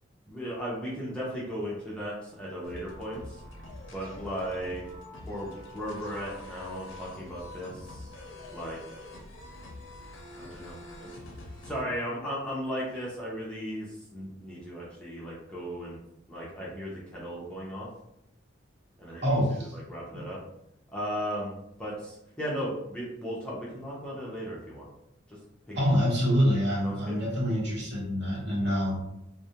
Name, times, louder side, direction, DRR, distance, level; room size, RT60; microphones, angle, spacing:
voice 1, 0.3-3.4 3.9-4.8 5.3-8.1 8.5-8.8 10.3-11.2 11.6-16.0 16.3-17.9 19.0-20.4 20.9-24.9 25.3-25.4 25.7-25.8 26.8-27.1, equal, 5° left, -7 dB, 0.5 m, -36 dB
sound 1, 2.6-11.8, left 2 dB, 65° left, 0.5 m, -45 dB
voice 2, 19.2-19.8 25.7-29.0, equal, 55° right, -5 dB, 1.0 m, -26 dB
2.3 x 2.1 x 2.8 m, 0.79 s
head